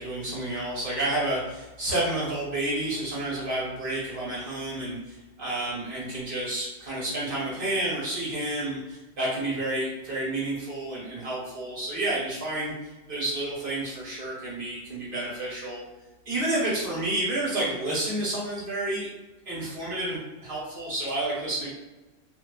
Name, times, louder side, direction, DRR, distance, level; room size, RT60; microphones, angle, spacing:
voice 1, 0.0-15.8 16.2-19.1 19.5-21.7, right 1 dB, 45° right, -8 dB, 1.2 m, -30 dB
2.4 x 2.3 x 2.3 m, 1.1 s
omnidirectional pair, 1.3 m